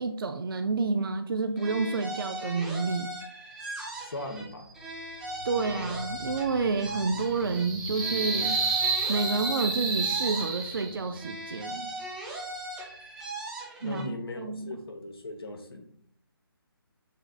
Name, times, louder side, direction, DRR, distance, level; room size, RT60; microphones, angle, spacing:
voice 1, 0.0-3.1 5.4-8.6 9.1-11.9 13.8-14.7, right 4 dB, 65° right, 8 dB, 0.4 m, -29 dB
sound 1, 1.6-4.5 4.7-7.7 7.9-10.9 11.1-14.1, right 1 dB, 5° right, 0.4 m, -39 dB
voice 2, 3.9-4.7 13.8-15.9, left 2 dB, 70° left, 5 dB, 0.9 m, -39 dB
sound 2, 5.2-11.2, right 4 dB, 45° right, 1.6 m, -31 dB
6.7 x 3.2 x 2.3 m, 0.67 s
figure-of-eight pair, 150°, 13 cm